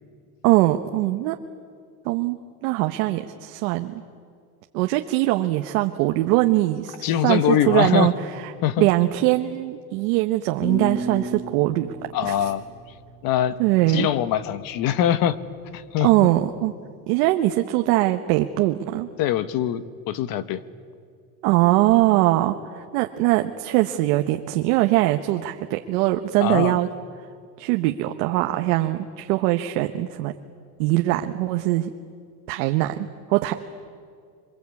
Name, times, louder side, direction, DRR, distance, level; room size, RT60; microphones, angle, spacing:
voice 1, 0.4-1.4 2.0-4.0 4.7-8.5 8.8-11.9 12.2-12.5 13.6-14.1 16.0-16.7 17.1-19.1 21.4-26.9 27.6-30.3 30.8-31.9 32.5-33.5, right 17 dB, 70° right, 5 dB, 1.2 m, -22 dB
voice 2, 7.0-8.1 8.6-8.9 12.1-12.7 13.2-13.6 13.9-15.4 15.7-16.1 19.2-20.6 26.4-26.7, left 11 dB, 45° left, 13 dB, 1.2 m, -22 dB
sound 1, 10.6-13.6, equal, 70° left, 5.1 m, -33 dB
26.5 x 24.0 x 8.4 m, 2.2 s
supercardioid pair, 145°, 47 cm